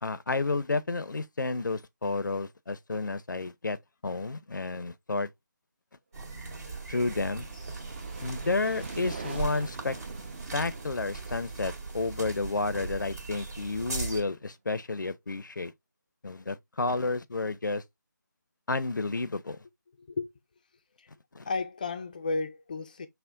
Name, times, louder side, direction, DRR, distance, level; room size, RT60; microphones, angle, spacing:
voice 1, 0.0-3.8 4.0-5.3 6.9-7.5 8.2-10.0 10.5-15.7 16.2-17.8 18.7-19.6 21.3-21.5, left 3 dB, 80° left, 0.5 m, -31 dB
sound 1, 6.1-14.2, right 4 dB, 55° right, 1.7 m, -39 dB
sound 2, 6.7-13.4, right 4 dB, 35° right, 0.7 m, -45 dB
voice 2, 20.0-20.3 21.0-21.1 21.5-23.1, left 3 dB, 25° left, 0.4 m, -33 dB
5.7 x 2.1 x 2.5 m
figure-of-eight pair, 160°, 10 cm